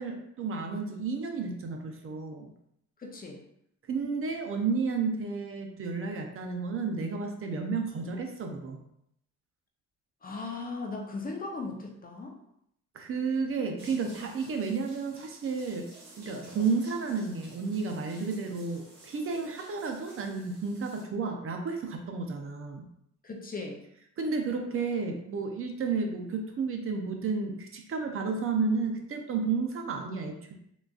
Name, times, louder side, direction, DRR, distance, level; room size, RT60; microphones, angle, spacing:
voice 1, 0.0-2.5 3.9-8.8 12.9-15.9 16.2-22.9 24.2-30.5, right 4 dB, 45° right, 3 dB, 0.5 m, -32 dB
voice 2, 3.0-3.4 10.2-12.4 16.5-16.7 23.2-23.8, left 3 dB, 30° left, 1 dB, 0.6 m, -37 dB
sound 1, 13.8-21.0, right 2 dB, 65° right, 1.3 m, -53 dB
3.9 x 2.3 x 2.3 m, 0.75 s
cardioid pair, 90°, 30 cm